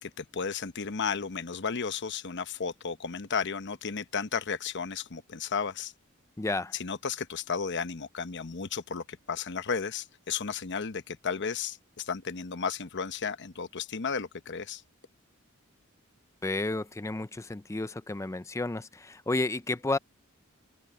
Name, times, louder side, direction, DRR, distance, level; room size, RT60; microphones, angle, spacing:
voice 1, 0.0-5.9 6.8-14.8, left 6 dB, 55° left, 0.9 m, -33 dB
voice 2, 6.4-6.7 16.4-20.0, left 2 dB, 15° left, 0.5 m, -31 dB
head